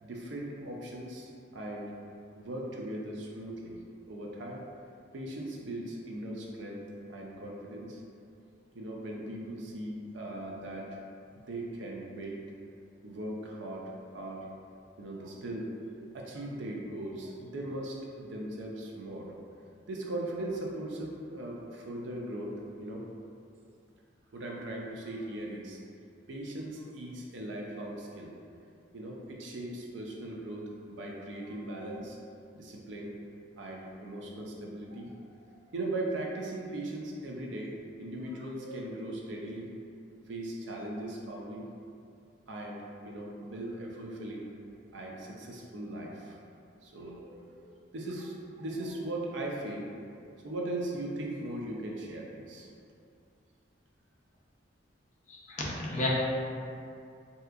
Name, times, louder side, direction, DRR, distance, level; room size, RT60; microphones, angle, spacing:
voice 1, 0.0-1.9 2.4-3.8 4.1-4.6 5.1-6.8 7.1-8.0 8.7-10.9 11.3-12.4 13.0-14.4 15.0-19.3 19.9-23.1 24.3-25.8 26.3-28.3 28.9-32.2 32.5-33.1 33.6-37.7 38.0-39.7 40.3-41.6 42.5-42.8 43.0-44.5 44.9-46.4 46.8-49.9 50.4-52.7, right 1 dB, 70° right, -2 dB, 0.4 m, -39 dB
voice 2, 55.3-56.1, left 2 dB, 40° left, -5 dB, 0.5 m, -33 dB
3.4 x 2.8 x 2.4 m, 2.5 s
head